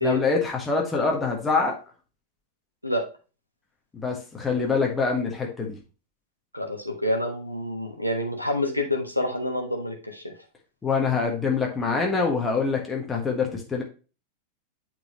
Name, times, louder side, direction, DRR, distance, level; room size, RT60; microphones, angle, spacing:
voice 1, 0.0-1.8 3.9-5.8 10.8-13.8, left 4 dB, 15° left, 0 dB, 1.6 m, -25 dB
voice 2, 6.5-10.3, left 1 dB, 90° left, 2 dB, 1.3 m, -27 dB
8.6 x 4.6 x 3.0 m, 0.34 s
figure-of-eight pair, 90°, 0 cm